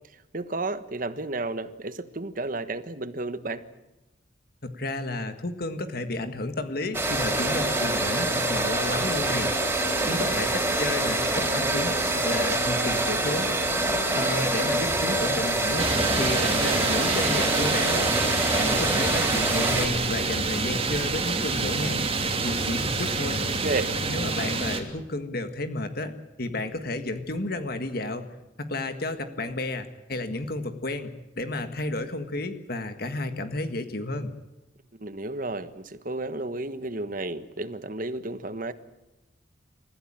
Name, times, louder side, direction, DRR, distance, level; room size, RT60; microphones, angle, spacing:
voice 1, 0.3-3.6 10.0-10.5 23.6-23.9 35.0-38.7, right 2 dB, 45° right, 1.4 m, -32 dB
voice 2, 4.6-9.5 10.1-13.5 14.1-15.9 16.2-18.2 18.5-22.0 22.4-23.4 24.1-28.3 28.6-31.1 31.4-34.3, left 2 dB, 55° left, 1.7 m, -32 dB
sound 1, 6.9-19.9, right 2 dB, 10° right, 4.2 m, -25 dB
sound 2, 15.8-24.8, right 3 dB, 30° right, 2.9 m, -27 dB
29.0 x 15.5 x 8.9 m
head